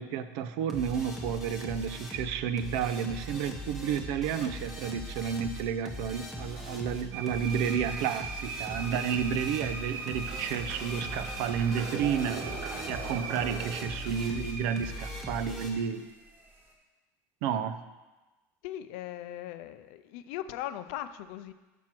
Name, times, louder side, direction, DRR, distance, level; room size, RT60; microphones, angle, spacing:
voice 1, 0.0-12.5 12.9-16.1 17.4-17.8, right 8 dB, 65° right, 11 dB, 0.5 m, -31 dB
sound 1, 0.7-15.7, left 1 dB, ahead, 1.0 m, -40 dB
sound 2, 7.1-16.7, right 4 dB, 25° right, 1.2 m, -41 dB
sound 3, 8.6-13.8, right 4 dB, 45° right, 1.2 m, -42 dB
voice 2, 18.6-21.5, left 12 dB, 70° left, 12 dB, 0.4 m, -39 dB
6.1 x 5.8 x 4.4 m, 1.1 s
cardioid pair, 150°, 8 cm